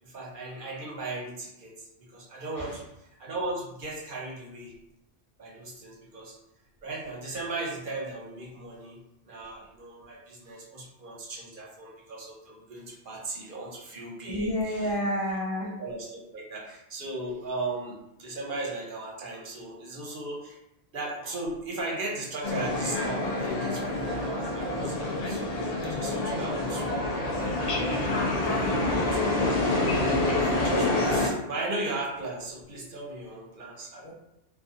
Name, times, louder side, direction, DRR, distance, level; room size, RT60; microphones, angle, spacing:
voice 1, 0.0-1.9 2.1-2.8 3.2-4.7 5.4-6.4 6.8-9.0 9.3-14.9 15.8-20.6 20.9-25.4 25.9-26.9 28.5-29.8 30.1-34.1, right 2 dB, 55° right, -2 dB, 0.7 m, -37 dB
voice 2, 14.2-15.7 28.5-29.1 33.9-34.1, equal, 30° left, -7 dB, 1.0 m, -30 dB
sound 1, 22.4-31.3, left 2 dB, 60° left, 0.4 m, -27 dB
2.6 x 2.3 x 2.5 m, 0.85 s
omnidirectional pair, 1.2 m